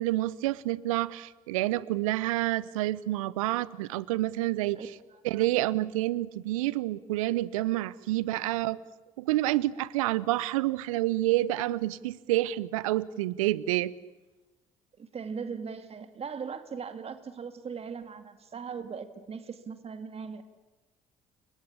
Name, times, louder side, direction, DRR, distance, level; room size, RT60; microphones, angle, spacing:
voice 1, 0.0-4.8 5.2-8.8 9.2-13.9, right 16 dB, 75° right, 21 dB, 0.9 m, -28 dB
voice 2, 4.8-5.2 15.0-20.4, right 6 dB, 35° right, 9 dB, 2.4 m, -39 dB
29.5 x 23.0 x 8.6 m, 1.1 s
figure-of-eight pair, 55°, 18 cm